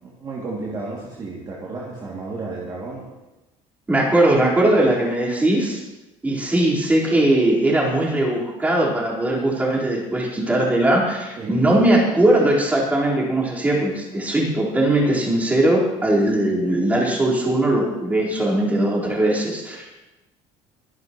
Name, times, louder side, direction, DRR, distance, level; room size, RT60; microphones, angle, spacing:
voice 1, 0.0-3.1 11.4-11.7, right 3 dB, 30° right, -5 dB, 2.6 m, -32 dB
voice 2, 3.9-5.8 6.2-19.9, right 1 dB, 10° right, -5 dB, 4.4 m, -19 dB
24.0 x 11.5 x 3.1 m, 1.0 s
cardioid pair, 145°, 13 cm